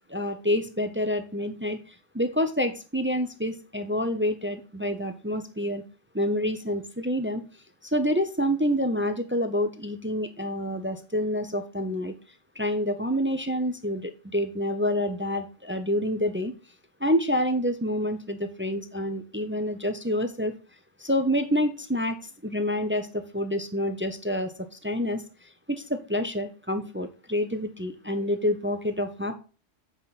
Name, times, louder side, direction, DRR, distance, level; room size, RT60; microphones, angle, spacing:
voice 1, 0.1-5.8 6.1-7.4 7.8-12.1 12.6-16.5 17.0-20.5 21.0-24.5 24.8-29.3, equal, 15° right, 9 dB, 0.5 m, -28 dB
8.1 x 5.8 x 4.0 m, 0.35 s
omnidirectional pair, 1.2 m